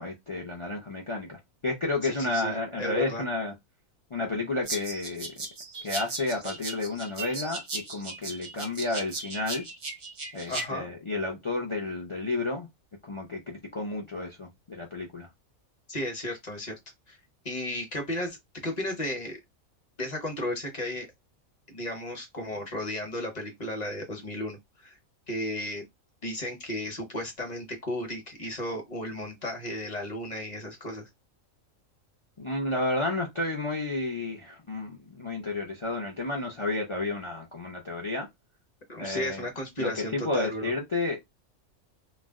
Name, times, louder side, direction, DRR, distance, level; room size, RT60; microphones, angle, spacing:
voice 1, 0.0-3.5 4.1-5.3 5.8-9.6 10.3-12.7 13.0-15.3 32.4-38.3 39.0-39.4 39.8-41.2, left 2 dB, 55° left, 0.3 m, -31 dB
voice 2, 2.1-3.2 10.5-10.9 15.9-16.7 17.1-17.2 17.4-18.4 18.6-19.4 20.0-21.1 21.7-25.0 25.3-25.8 26.2-31.1 38.9-40.7, left 1 dB, 35° left, 0.8 m, -34 dB
sound 1, 4.7-10.7, right 3 dB, 45° right, 0.6 m, -37 dB
2.4 x 2.1 x 3.5 m
omnidirectional pair, 1.5 m